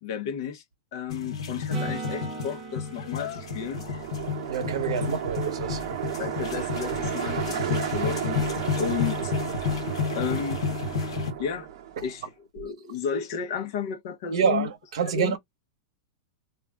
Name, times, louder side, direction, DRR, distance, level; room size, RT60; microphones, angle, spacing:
voice 1, 0.0-0.6 0.9-3.8 6.2-8.5 8.8-9.3 10.1-10.6 11.4-11.7 12.0-14.7 15.0-15.4, left 7 dB, 50° left, 0.6 m, -33 dB
sound 1, 1.1-11.3, left 6 dB, 80° left, 0.8 m, -31 dB
Acoustic guitar / Strum, 1.7-5.5 10.3-10.4, right 3 dB, 15° right, 0.8 m, -39 dB
sound 2, 3.2-12.2, right 10 dB, 50° right, 0.7 m, -33 dB
voice 2, 4.5-5.8 14.3-15.4, right 6 dB, 80° right, 0.8 m, -27 dB
2.3 x 2.1 x 3.4 m
supercardioid pair, 175°, 3 cm